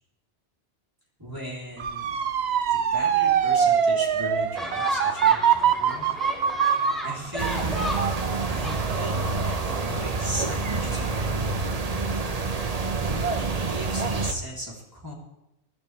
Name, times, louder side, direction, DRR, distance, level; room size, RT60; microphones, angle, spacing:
voice 1, 1.2-2.1 2.7-6.1 7.0-7.9 8.5-11.8 13.4-15.1, equal, 20° right, -4 dB, 3.8 m, -37 dB
Motor vehicle (road) / Siren, 1.8-10.7 11.1-11.6, right 8 dB, 75° right, 1.0 m, -24 dB
sound 1, 4.6-9.6, left 1 dB, ahead, 2.3 m, -34 dB
sound 2, 7.4-14.3, right 3 dB, 40° right, 1.0 m, -27 dB
23.0 x 11.5 x 3.5 m, 0.90 s
omnidirectional pair, 1.1 m